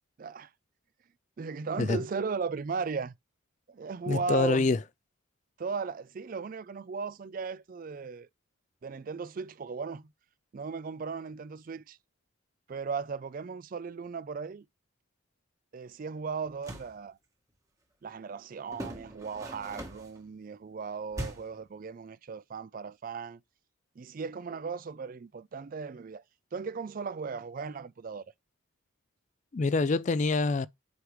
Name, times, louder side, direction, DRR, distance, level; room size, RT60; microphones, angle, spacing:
voice 1, 0.2-0.5 1.4-3.1 3.7-4.7 5.6-8.3 8.8-10.0 10.5-12.0 12.7-14.7 15.7-17.2 18.0-23.4 24.0-26.2 26.5-28.2, right 5 dB, 40° right, 0.3 m, -37 dB
voice 2, 4.1-4.8 29.5-30.7, left 3 dB, 35° left, 0.3 m, -26 dB
sound 1, 16.5-17.0 18.7-20.2 21.1-21.6, right 1 dB, 15° right, 1.2 m, -40 dB
8.1 x 5.0 x 3.1 m
head